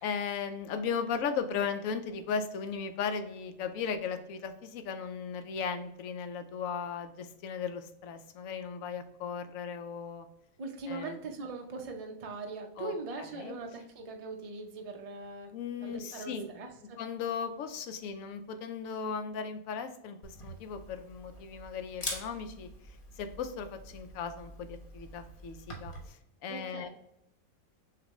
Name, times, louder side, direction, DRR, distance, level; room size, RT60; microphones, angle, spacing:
voice 1, 0.0-10.3 10.9-11.2 12.8-12.9 13.2-13.5 15.5-16.5 17.0-22.7 23.2-26.2 26.4-26.9, left 6 dB, 75° left, 8 dB, 1.0 m, -36 dB
voice 2, 10.6-15.5 15.8-17.0 26.5-26.9, right 3 dB, 40° right, 3 dB, 0.5 m, -41 dB
Camera, 20.2-26.1, left 1 dB, 40° left, 1.2 m, -45 dB
6.6 x 2.6 x 3.1 m, 0.80 s
omnidirectional pair, 1.5 m